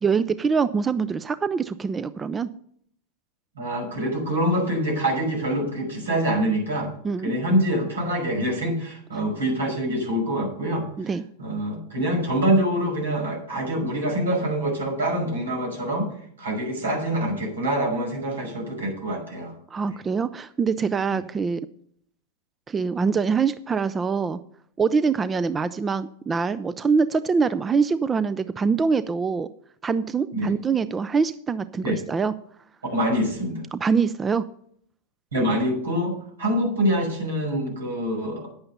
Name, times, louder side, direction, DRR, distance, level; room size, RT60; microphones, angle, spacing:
voice 1, 0.0-2.5 7.0-7.3 11.0-11.2 19.7-21.6 22.7-24.4 24.8-29.5 29.8-32.3 33.7-34.4, right 5 dB, 20° right, 15 dB, 0.5 m, -24 dB
voice 2, 3.6-6.9 7.2-16.1 16.4-19.5 19.9-20.0 21.1-21.2 30.3-30.5 31.8-32.0 32.9-33.6 35.3-38.4, right 1 dB, 85° right, 1 dB, 5.7 m, -25 dB
10.5 x 8.8 x 5.5 m, 0.64 s
hypercardioid pair, 100°, 0 cm